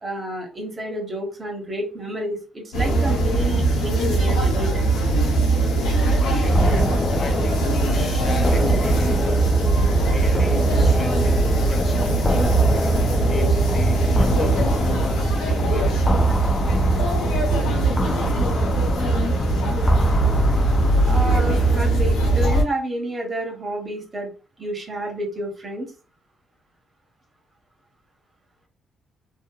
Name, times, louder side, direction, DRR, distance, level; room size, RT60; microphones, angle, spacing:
voice 1, 0.0-5.0 21.1-24.3 24.6-25.9, right 1 dB, 30° right, 1.1 m, -29 dB
sound 1, 2.7-22.6, right 2 dB, 90° left, 0.8 m, -20 dB
voice 2, 6.0-6.9 7.2-9.7 10.0-12.3 13.0-16.1, left 2 dB, 40° left, 0.9 m, -36 dB
sound 2, 6.5-21.8, left 1 dB, 20° left, 0.3 m, -26 dB
2.7 x 2.4 x 2.3 m
cardioid pair, 90°, 0 cm